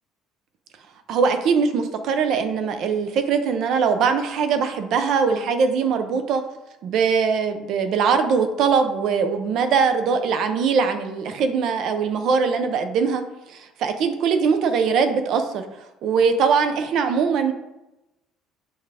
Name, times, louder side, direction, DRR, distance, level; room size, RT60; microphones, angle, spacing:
voice 1, 1.1-6.4 6.8-13.2 13.5-15.6 16.0-17.5, right 5 dB, 50° right, 8 dB, 0.6 m, -21 dB
7.0 x 4.8 x 3.4 m, 0.97 s
cardioid pair, 175°, 0 cm